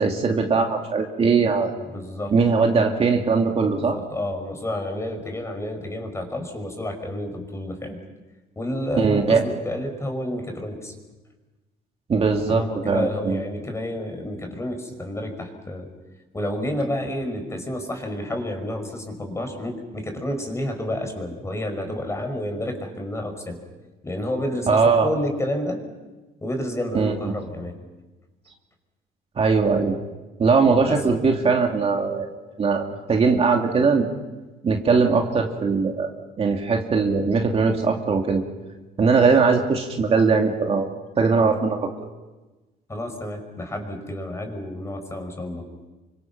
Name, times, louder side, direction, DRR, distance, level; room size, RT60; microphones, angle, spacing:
voice 1, 0.0-1.7 2.3-4.0 9.0-9.4 12.1-13.4 24.7-25.1 26.9-27.1 29.4-29.9 30.4-32.3 32.6-34.1 34.6-36.1 36.4-38.4 39.0-40.9 41.2-41.8, right 4 dB, 35° right, 2 dB, 2.7 m, -20 dB
voice 2, 1.7-2.3 3.6-8.0 8.6-10.9 12.5-15.9 16.3-23.6 24.0-25.8 26.4-27.7 30.8-31.0 42.9-45.6, left 1 dB, 15° left, 5 dB, 5.7 m, -30 dB
29.5 x 25.0 x 6.1 m, 1.2 s
cardioid pair, 110°, 17 cm